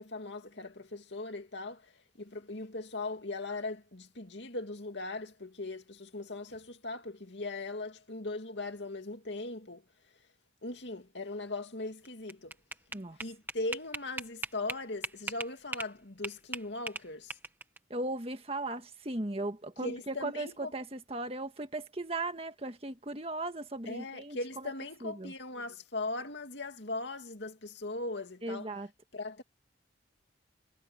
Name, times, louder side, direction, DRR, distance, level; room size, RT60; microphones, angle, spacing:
voice 1, 0.0-1.8 2.2-9.8 10.6-12.5 13.2-17.3 19.8-20.7 23.9-28.7 29.1-29.4, left 2 dB, 65° left, 2.5 m, -39 dB
sound 1, 12.0-15.9 16.2-17.8, right 2 dB, 10° right, 1.6 m, -39 dB
voice 2, 17.9-24.7 25.0-25.3 28.4-28.9, right 2 dB, 30° right, 1.7 m, -37 dB
head